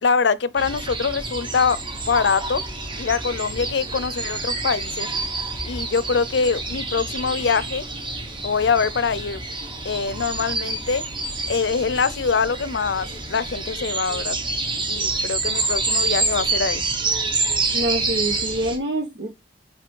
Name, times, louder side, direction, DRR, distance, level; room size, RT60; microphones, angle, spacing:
voice 1, 0.0-2.6 3.0-5.1 5.6-7.8 8.4-9.4 9.8-11.0 11.5-14.4 14.9-16.8, left 5 dB, 70° left, 0.5 m, -23 dB
sound 1, 0.6-18.8, right 3 dB, 25° right, 1.2 m, -27 dB
voice 2, 17.7-19.3, right 1 dB, 70° right, 1.3 m, -25 dB
5.8 x 5.0 x 3.7 m
head